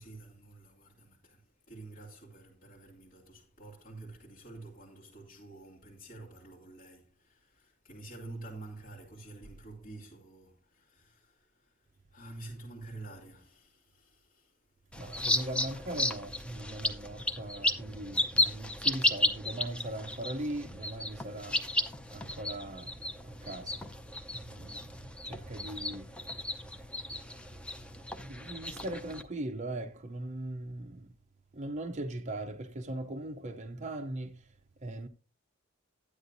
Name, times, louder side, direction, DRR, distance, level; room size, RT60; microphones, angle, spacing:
voice 1, 0.0-15.0, right 2 dB, 40° left, 2.5 m, -49 dB
sound 1, 14.9-29.2, left 1 dB, 5° left, 0.6 m, -34 dB
voice 2, 15.0-21.6 22.1-23.0 23.2-23.8 24.3-26.1 28.2-31.1 31.5-34.4 34.8-35.1, right 1 dB, 35° right, 0.6 m, -39 dB
12.5 x 9.7 x 2.6 m
head